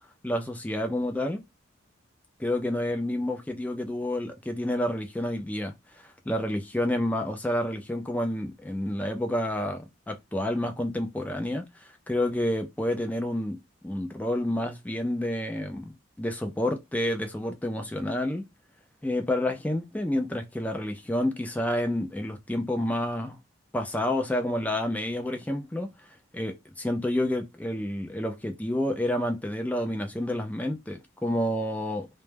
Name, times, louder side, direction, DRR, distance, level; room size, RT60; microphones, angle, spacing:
voice 1, 0.2-1.4 2.4-5.7 6.0-13.6 13.8-18.4 19.0-23.4 23.7-25.9 26.3-32.1, left 1 dB, 5° left, 0.3 m, -29 dB
2.1 x 2.1 x 3.2 m
head